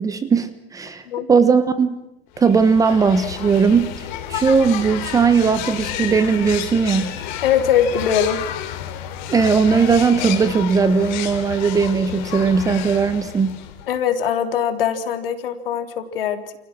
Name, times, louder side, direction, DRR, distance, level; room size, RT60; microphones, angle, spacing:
voice 1, 0.0-1.0 1.3-2.0 2.4-4.0 4.3-7.2 9.3-13.6, right 5 dB, 10° right, 12 dB, 1.2 m, -18 dB
sound 1, 2.4-14.0, left 11 dB, 45° left, 3.5 m, -31 dB
voice 2, 7.4-8.4 13.9-16.4, left 8 dB, 60° left, 7 dB, 3.6 m, -21 dB
29.5 x 28.0 x 6.2 m, 0.90 s
hypercardioid pair, 140°, 32 cm